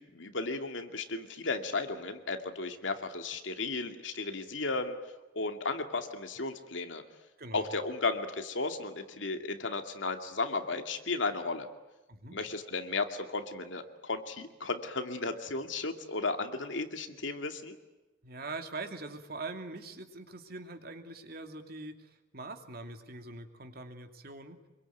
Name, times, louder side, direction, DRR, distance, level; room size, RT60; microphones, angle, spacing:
voice 1, 0.0-5.0 5.3-7.0 7.5-11.7 12.3-17.8, left 3 dB, 85° left, 6 dB, 2.5 m, -34 dB
voice 2, 18.2-24.6, right 3 dB, 55° right, 6 dB, 2.7 m, -43 dB
26.5 x 23.0 x 9.4 m, 1.1 s
head